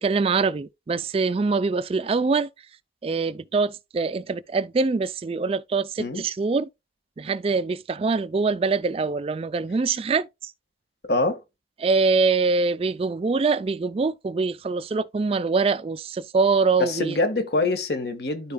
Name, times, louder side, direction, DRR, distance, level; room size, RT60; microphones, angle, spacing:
voice 1, 0.0-2.5 3.0-6.7 7.2-10.5 11.8-17.2, right 4 dB, 35° right, 0.3 m, -24 dB
voice 2, 11.1-11.4 16.8-18.5, left 2 dB, 65° left, 1.5 m, -25 dB
13.0 x 4.3 x 2.2 m
head